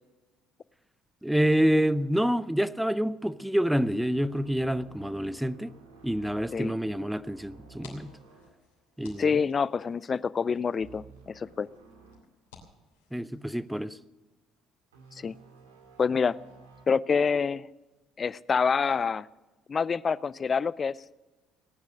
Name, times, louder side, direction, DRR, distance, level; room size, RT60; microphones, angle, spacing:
voice 1, 1.2-5.7 6.0-8.1 9.0-9.4 13.1-14.0, equal, 5° right, 0.7 m, -27 dB
sound 1, 3.6-9.7 9.9-10.2 10.8-12.2 12.7-12.8 14.9-16.9, right 4 dB, 85° right, 2.3 m, -54 dB
sound 2, 7.5-13.8, left 5 dB, 75° left, 3.0 m, -58 dB
voice 2, 9.2-11.7 15.1-15.3 16.0-16.4 16.9-17.7 18.2-19.3 19.7-20.9, left 5 dB, 35° left, 0.5 m, -27 dB
18.0 x 9.6 x 6.5 m
hypercardioid pair, 55°, 0 cm